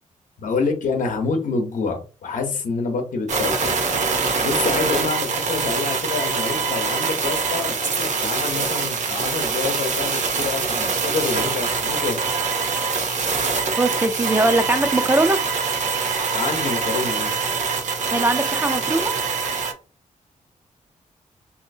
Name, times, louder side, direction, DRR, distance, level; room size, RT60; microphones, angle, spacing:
voice 1, 0.4-3.7 4.4-12.3 16.3-17.3, left 4 dB, 70° left, 0.8 m, -27 dB
sound 1, 3.3-19.7, right 4 dB, 60° right, 0.7 m, -24 dB
voice 2, 13.8-15.4 18.1-19.1, right 2 dB, 15° right, 0.3 m, -21 dB
3.1 x 2.7 x 2.6 m
cardioid pair, 105°, 14 cm